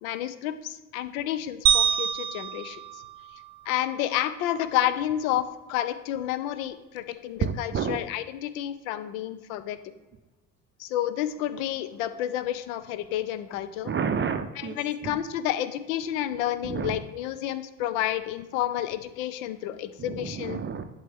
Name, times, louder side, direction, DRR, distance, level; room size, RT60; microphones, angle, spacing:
voice 1, 0.0-3.0 3.7-9.9 10.8-13.9 14.6-20.7, left 12 dB, 60° left, 13 dB, 0.7 m, -30 dB
sound 1, 1.7-4.0, right 9 dB, 60° right, 0.9 m, -26 dB
voice 2, 7.4-8.1 13.8-15.2 16.6-17.0 20.0-20.8, right 6 dB, 25° right, 9 dB, 0.6 m, -30 dB
11.0 x 4.6 x 3.5 m, 1.1 s
figure-of-eight pair, 55°, 46 cm